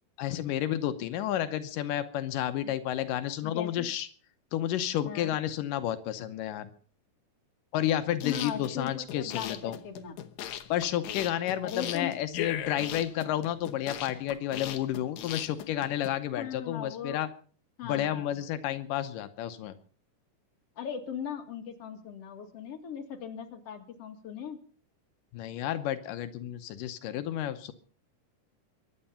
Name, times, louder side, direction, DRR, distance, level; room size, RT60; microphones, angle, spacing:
voice 1, 0.2-4.1 4.5-6.7 7.7-9.8 10.7-17.3 17.8-19.7 25.3-27.7, left 11 dB, 85° left, 9 dB, 2.6 m, -31 dB
voice 2, 3.4-3.9 5.0-5.4 8.2-10.1 11.6-12.1 16.4-17.2 17.8-18.4 20.8-24.6, left 8 dB, 50° left, 4 dB, 3.0 m, -38 dB
sound 1, 8.1-16.1, left 11 dB, 70° left, 2.3 m, -38 dB
23.5 x 10.0 x 5.7 m, 0.44 s
omnidirectional pair, 3.7 m